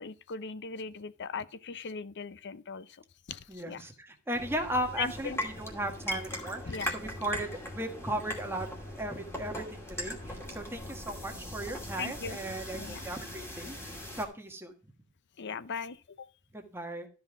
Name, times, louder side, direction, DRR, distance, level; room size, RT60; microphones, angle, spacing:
voice 1, 0.0-3.9 5.0-5.4 6.7-7.0 12.0-12.4 12.7-13.0 15.4-16.3, left 5 dB, 55° left, 0.6 m, -39 dB
voice 2, 3.5-8.7 9.0-14.7 16.5-17.1, right 1 dB, 10° right, 1.5 m, -36 dB
sound 1, 4.3-14.3, equal, 10° left, 2.4 m, -40 dB
12.5 x 5.6 x 4.8 m
head